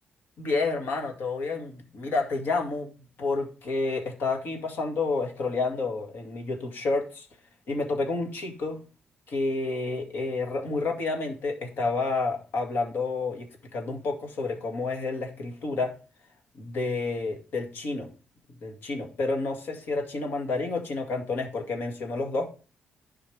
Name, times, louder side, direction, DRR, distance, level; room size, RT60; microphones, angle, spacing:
voice 1, 0.4-2.9 3.2-7.3 7.7-8.8 9.3-16.0 16.6-18.1 18.6-22.5, left 3 dB, 70° left, 2.1 m, -29 dB
11.5 x 4.8 x 3.5 m
cardioid pair, 130°, 4 cm